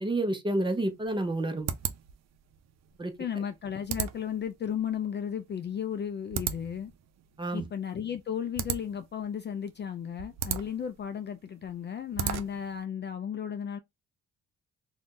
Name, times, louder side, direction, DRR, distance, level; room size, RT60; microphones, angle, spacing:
voice 1, 0.0-1.7 3.0-3.1 7.4-7.6, right 1 dB, 15° right, 0.7 m, -29 dB
sound 1, 0.6-12.8, right 9 dB, 60° right, 0.5 m, -38 dB
voice 2, 3.2-6.9 7.5-13.8, left 8 dB, 35° left, 0.4 m, -34 dB
2.5 x 2.3 x 3.6 m
cardioid pair, 90°, 30 cm